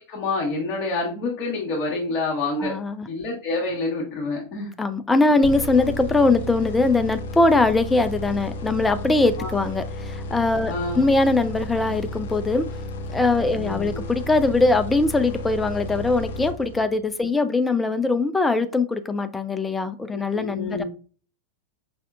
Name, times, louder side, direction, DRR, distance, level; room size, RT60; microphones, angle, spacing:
voice 1, 0.1-2.8 3.1-4.7 9.4-9.5 10.7-11.1 13.6-14.0 20.1-20.8, left 3 dB, 40° left, 1.3 m, -28 dB
voice 2, 2.6-3.1 4.8-12.7 13.1-20.8, left 3 dB, 10° left, 0.5 m, -21 dB
sound 1, 5.4-17.1, left 1 dB, 55° left, 0.7 m, -33 dB
5.5 x 3.4 x 2.4 m
figure-of-eight pair, 90°, 0 cm